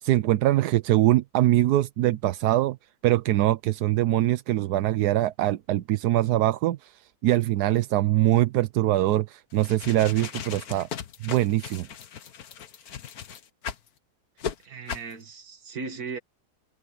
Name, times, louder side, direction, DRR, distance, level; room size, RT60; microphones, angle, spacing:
voice 1, 0.0-2.8 3.0-10.9 11.2-11.9, right 14 dB, 85° right, 1.2 m, -23 dB
sound 1, 9.5-13.9 14.4-14.5 14.9-15.1, left 8 dB, 70° left, 1.6 m, -37 dB
voice 2, 14.6-16.2, right 4 dB, 70° right, 2.3 m, -37 dB
omnidirectional pair, 1.6 m